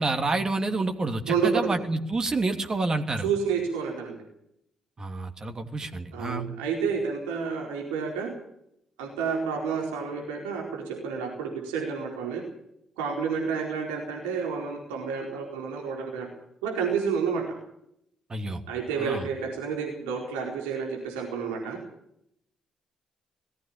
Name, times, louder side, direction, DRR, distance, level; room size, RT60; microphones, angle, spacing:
voice 1, 0.0-3.3 5.0-6.5 18.3-18.6 19.0-19.3, right 3 dB, 35° right, 6 dB, 2.9 m, -28 dB
voice 2, 1.3-1.7 3.2-4.2 6.1-8.3 9.0-12.4 13.0-16.3 16.6-17.4 18.7-21.8, right 6 dB, 80° right, 0 dB, 4.4 m, -30 dB
19.5 x 15.0 x 8.8 m, 0.74 s
hypercardioid pair, 40°, 2 cm